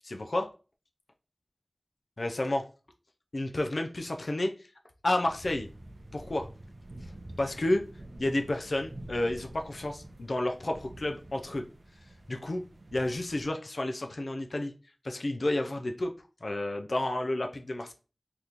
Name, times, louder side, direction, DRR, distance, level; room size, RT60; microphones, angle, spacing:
voice 1, 0.0-0.5 2.2-2.6 3.3-4.5 5.0-5.7 6.1-6.5 7.4-7.8 8.2-11.6 12.3-12.6 12.9-14.7 15.0-16.1 16.4-17.9, left 1 dB, 75° left, 4 dB, 0.4 m, -30 dB
sound 1, 5.2-13.5, right 1 dB, 80° right, 0.5 m, -48 dB
2.9 x 2.5 x 3.4 m, 0.35 s
wide cardioid pair, 40°, 0 cm